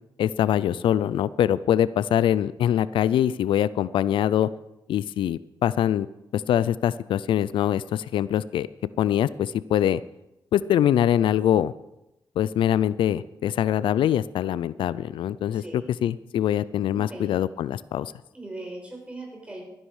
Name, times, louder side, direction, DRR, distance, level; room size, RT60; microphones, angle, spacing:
voice 1, 0.2-4.5 4.9-6.1 6.3-8.7 9.0-10.0 10.5-11.7 12.4-18.1, left 10 dB, 85° left, 18 dB, 0.4 m, -23 dB
voice 2, 15.5-15.9 16.9-17.4 18.3-19.6, right 2 dB, 15° right, -1 dB, 5.1 m, -39 dB
13.5 x 11.0 x 4.9 m, 0.89 s
cardioid pair, 85°, 8 cm